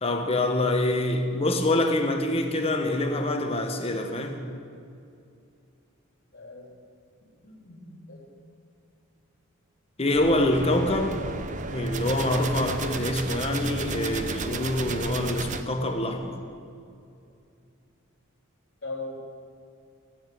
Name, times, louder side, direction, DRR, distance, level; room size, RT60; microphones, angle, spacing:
voice 1, 0.0-4.4 10.0-11.2 11.7-16.4, left 1 dB, 30° left, 4 dB, 1.2 m, -25 dB
voice 2, 6.3-6.7 7.4-8.2 18.8-19.2, left 2 dB, 50° left, -1 dB, 3.5 m, -39 dB
sound 1, 10.1-15.6, right 3 dB, 35° right, 0.7 m, -33 dB
15.5 x 9.2 x 6.7 m, 2.5 s
head